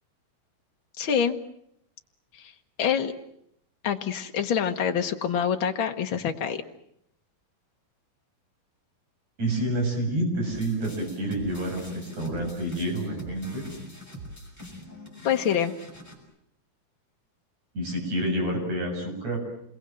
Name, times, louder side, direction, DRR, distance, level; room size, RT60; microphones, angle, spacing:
voice 1, 1.0-1.3 2.4-2.5 2.8-3.1 3.8-6.6 15.2-15.7, left 8 dB, 80° left, 5 dB, 1.1 m, -26 dB
voice 2, 9.4-13.6 17.8-19.4, right 1 dB, 45° right, 2 dB, 8.6 m, -28 dB
sound 1, 10.5-16.1, equal, 5° right, 6.3 m, -43 dB
28.5 x 22.5 x 7.6 m, 0.74 s
omnidirectional pair, 4.3 m